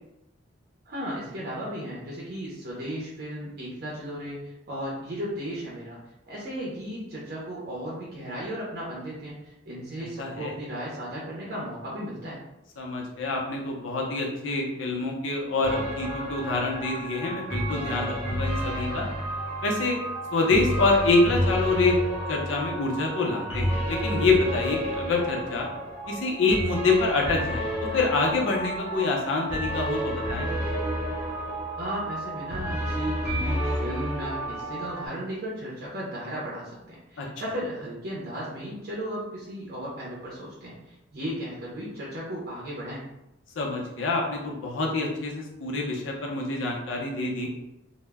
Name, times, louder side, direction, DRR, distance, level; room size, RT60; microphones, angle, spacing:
voice 1, 0.9-6.0 6.3-12.4 31.8-43.1, equal, 50° right, -5 dB, 0.5 m, -35 dB
voice 2, 10.2-10.5 12.8-19.1 19.6-20.0 20.3-22.0 22.3-25.7 26.1-27.7 27.9-30.5 37.2-37.3 43.6-47.5, left 3 dB, 90° left, -1 dB, 0.6 m, -26 dB
sound 1, 15.6-35.1, equal, 10° right, 0.8 m, -30 dB
2.0 x 2.0 x 3.3 m, 0.88 s
head